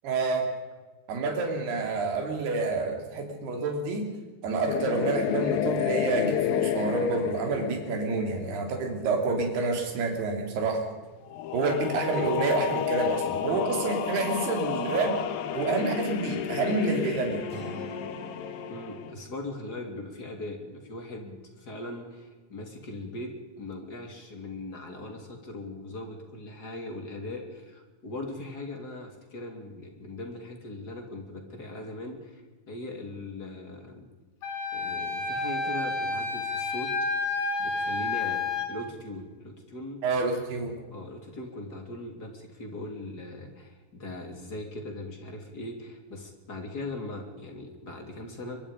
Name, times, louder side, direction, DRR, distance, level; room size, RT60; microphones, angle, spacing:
voice 1, 0.0-0.5 1.1-4.1 4.4-10.9 11.5-15.2 15.5-17.4 40.0-40.8, right 3 dB, 75° right, 3 dB, 5.0 m, -28 dB
sound 1, 4.7-9.2 11.3-19.1, left 10 dB, 70° left, 2.8 m, -31 dB
Acoustic guitar, 17.5-21.4, right 2 dB, 10° right, 5.2 m, -47 dB
voice 2, 18.7-34.1 34.7-37.1 37.6-40.0 40.9-48.6, left 2 dB, 25° left, 3 dB, 3.2 m, -40 dB
Wind instrument woodwind instrument, 34.4-38.7, left 3 dB, 85° left, 5.1 m, -30 dB
23.5 x 22.5 x 5.2 m, 1.3 s
omnidirectional pair, 4.6 m